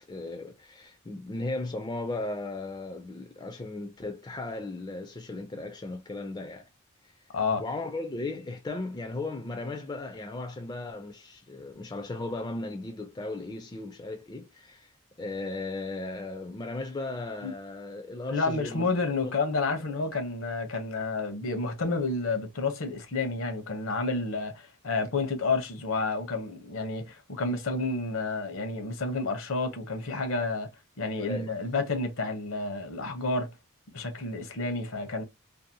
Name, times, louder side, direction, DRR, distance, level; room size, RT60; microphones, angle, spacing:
voice 1, 0.1-6.7 7.6-14.9 15.2-18.9 19.2-19.4 31.2-31.5, left 2 dB, 20° left, 0.3 m, -36 dB
voice 2, 7.3-7.6 17.4-17.5 18.3-30.7 31.0-33.5 33.9-35.2, left 3 dB, 70° left, 0.7 m, -30 dB
2.6 x 2.0 x 2.7 m
head